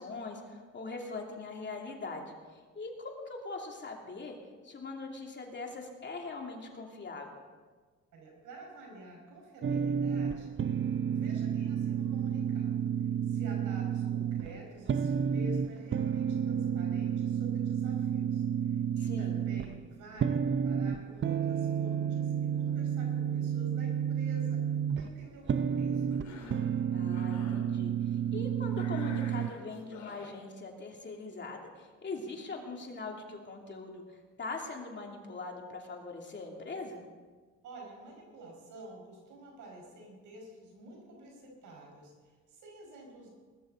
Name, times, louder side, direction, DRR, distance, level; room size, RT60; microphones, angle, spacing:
voice 1, 0.0-4.4 4.6-7.4 19.0-19.4 26.9-27.9 28.3-37.0, left 3 dB, 35° left, 1 dB, 2.7 m, -41 dB
voice 2, 8.1-26.2 28.3-28.6 37.6-43.3, right 1 dB, 85° right, 0 dB, 5.2 m, -50 dB
sound 1, 9.6-29.5, right 8 dB, 40° right, 0.6 m, -31 dB
Cough, 26.1-26.7 27.1-27.6 28.7-30.4, left 4 dB, 75° left, 3.7 m, -49 dB
19.5 x 13.0 x 3.9 m, 1.4 s
cardioid pair, 90°, 30 cm